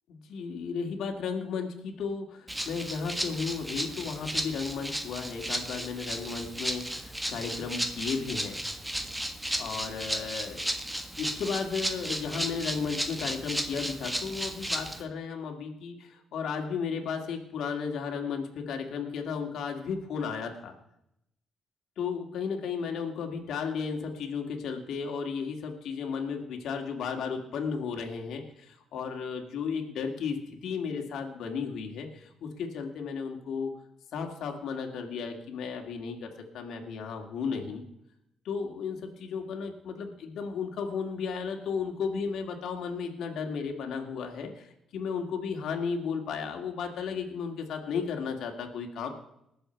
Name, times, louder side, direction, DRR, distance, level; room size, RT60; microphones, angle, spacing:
voice 1, 0.1-8.6 9.5-10.6 11.2-20.7 22.0-33.7 34.1-37.8 38.4-49.1, left 5 dB, 75° left, 3 dB, 2.2 m, -34 dB
Rattle (instrument), 2.5-15.0, right 1 dB, 5° right, 1.5 m, -34 dB
20.5 x 7.2 x 4.5 m, 0.78 s
cardioid pair, 90°, 0 cm